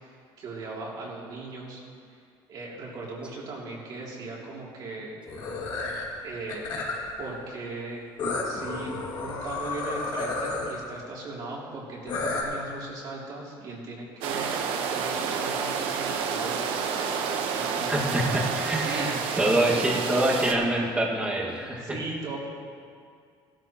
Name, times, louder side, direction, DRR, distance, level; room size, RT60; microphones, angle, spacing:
voice 1, 0.4-1.8 2.1-2.2 2.5-5.2 6.2-6.8 7.2-8.1 8.4-14.6 14.9-16.7 17.0-19.7 21.8-22.4, right 2 dB, 45° right, -4 dB, 2.8 m, -38 dB
sound 1, 5.3-6.0 6.5-7.1 8.2-10.7 12.1-12.4, left 3 dB, 55° left, 2.2 m, -31 dB
sound 2, 14.2-20.5, right 6 dB, 75° right, 1.0 m, -29 dB
voice 2, 17.9-22.0, right 1 dB, 10° right, -3 dB, 1.8 m, -26 dB
17.0 x 12.5 x 3.0 m, 2.2 s
cardioid pair, 160°, 9 cm